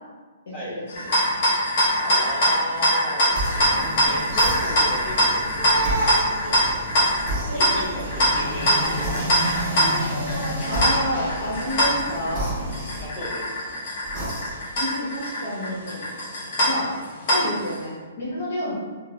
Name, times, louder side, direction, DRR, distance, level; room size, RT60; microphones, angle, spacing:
voice 1, 0.5-0.8 10.7-12.5 14.8-16.0 16.6-16.9 17.3-18.7, equal, 65° left, -7 dB, 1.0 m, -29 dB
sound 1, 0.9-17.8, equal, 35° left, 0.8 m, -23 dB
voice 2, 2.0-3.3 4.0-5.5 6.4-6.9 7.5-9.0 13.0-13.4 17.3-17.5, equal, 5° left, -11 dB, 0.6 m, -34 dB
sound 2, 3.3-3.7 4.3-5.0 5.8-6.9 7.3-8.1 9.0-9.8 10.6-11.4 12.3-13.4 14.0-14.8, right 1 dB, 15° right, 1.3 m, -32 dB
sound 3, 3.4-13.1, right 1 dB, 35° right, 0.8 m, -31 dB
4.1 x 2.1 x 2.3 m, 1.4 s
hypercardioid pair, 170°, 0 cm